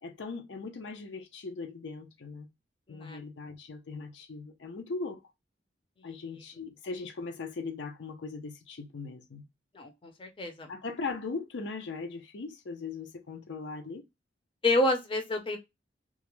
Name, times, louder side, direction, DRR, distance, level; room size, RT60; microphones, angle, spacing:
voice 1, 0.0-2.5 2.9-5.2 6.0-9.4 10.7-14.0, left 4 dB, 80° left, 0.5 m, -39 dB
voice 2, 2.9-3.2 6.0-6.1 9.7-10.7 14.6-15.6, left 1 dB, 30° left, 0.5 m, -29 dB
2.3 x 2.0 x 2.9 m
head